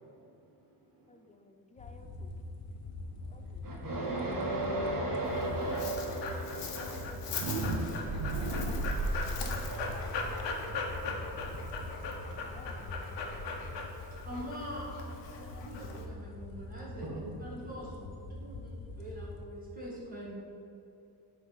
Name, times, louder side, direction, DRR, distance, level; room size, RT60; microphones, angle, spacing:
voice 1, 1.1-2.3 3.3-3.6 5.2-5.7 6.7-8.3 8.6-10.1 10.9-11.0 12.4-13.3, left 2 dB, 20° left, 5 dB, 0.3 m, -56 dB
sound 1, 1.8-19.5, left 2 dB, 55° left, 0.9 m, -44 dB
voice 2, 3.6-7.6 7.8-7.9 8.3-8.4 9.4-9.8 17.0-17.1, right 2 dB, 50° right, -4 dB, 1.6 m, -35 dB
Dog, 5.2-16.0, left 4 dB, 80° left, 1.0 m, -39 dB
sound 2, 7.1-13.0, right 2 dB, 75° right, 0.9 m, -36 dB
voice 3, 14.3-20.4, equal, 20° right, -7 dB, 1.7 m, -44 dB
8.5 x 3.3 x 5.5 m, 2.6 s
cardioid pair, 135°, 42 cm